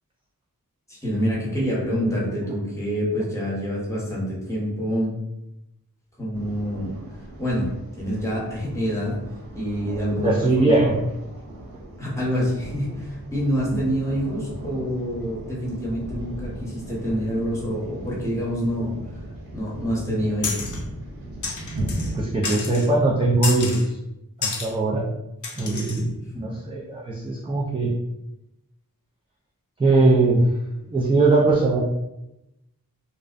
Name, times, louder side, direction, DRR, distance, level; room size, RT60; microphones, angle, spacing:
voice 1, 0.9-5.1 6.2-7.0 7.4-7.7 8.0-9.2 9.5-10.7 12.0-19.0 19.5-20.6 26.3-26.5, equal, 10° left, -6 dB, 0.9 m, -26 dB
sound 1, 6.3-22.2, right 1 dB, 75° right, 0.6 m, -36 dB
voice 2, 10.2-11.0 22.1-24.0 24.4-25.1 25.6-27.9 29.8-30.4 30.9-31.8, right 2 dB, 15° right, -5 dB, 0.3 m, -20 dB
sound 2, 20.4-20.8 21.4-22.1 22.4-22.9 23.4-23.9 24.4-24.7 25.4-26.0, left 4 dB, 55° left, 0.5 m, -30 dB
2.5 x 2.0 x 2.4 m, 0.89 s
wide cardioid pair, 65°, 36 cm